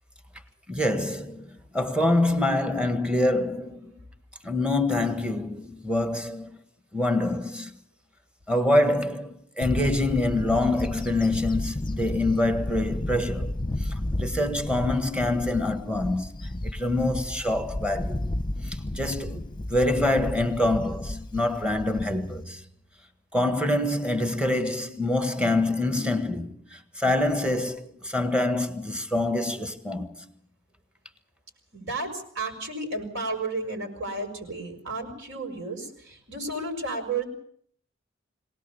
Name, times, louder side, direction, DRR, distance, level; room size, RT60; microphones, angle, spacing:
voice 1, 0.7-3.9 4.4-6.6 6.9-7.7 8.5-13.5 13.8-18.2 18.7-19.4 19.7-22.6 23.3-30.1, left 1 dB, 5° right, 1.6 m, -26 dB
Bird / Wind, 9.6-22.4, left 1 dB, 25° left, 0.9 m, -33 dB
voice 2, 31.7-37.3, right 2 dB, 65° right, 6.1 m, -32 dB
23.5 x 18.0 x 7.1 m
head